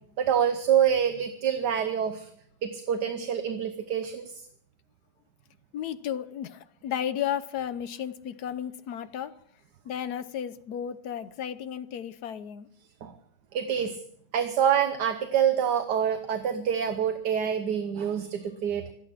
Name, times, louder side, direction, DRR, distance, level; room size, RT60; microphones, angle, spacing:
voice 1, 0.2-2.3 2.6-4.5 13.0-13.1 13.5-14.0 14.3-18.9, right 8 dB, 65° right, 8 dB, 1.6 m, -26 dB
voice 2, 5.7-9.3 9.8-12.7 13.8-13.9, left 9 dB, 65° left, 13 dB, 1.3 m, -34 dB
25.5 x 8.9 x 5.8 m, 0.66 s
omnidirectional pair, 2.0 m